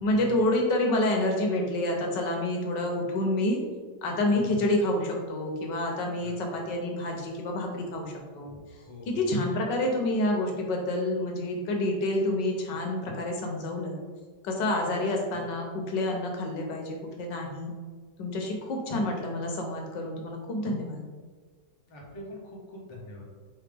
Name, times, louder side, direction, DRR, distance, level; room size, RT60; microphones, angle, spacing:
voice 1, 0.0-3.6 4.0-8.5 9.1-14.0 14.4-17.7 18.2-21.0, left 1 dB, 80° left, 1 dB, 1.4 m, -28 dB
voice 2, 21.9-23.2, left 2 dB, 25° left, -3 dB, 0.6 m, -44 dB
4.2 x 3.4 x 3.4 m, 1.5 s
omnidirectional pair, 1.9 m